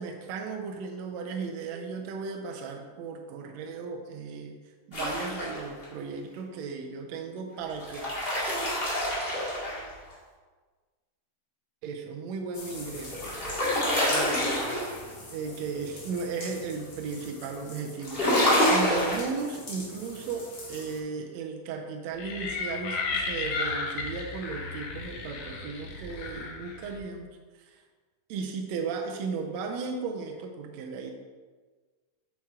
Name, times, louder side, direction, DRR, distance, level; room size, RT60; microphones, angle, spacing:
voice 1, 0.0-4.6 4.9-8.0 11.8-13.2 14.0-14.8 15.3-27.8 28.3-31.1, right 5 dB, 80° right, 2 dB, 1.6 m, -36 dB
sound 1, 4.9-5.9 7.7-10.1 12.8-15.1 18.0-19.3, equal, 20° left, 1.7 m, -27 dB
sound 2, 12.5-21.0, left 2 dB, 45° left, 1.6 m, -44 dB
sound 3, 22.2-27.0, left 4 dB, 70° left, 1.4 m, -34 dB
8.7 x 5.8 x 3.7 m, 1.4 s
omnidirectional pair, 3.7 m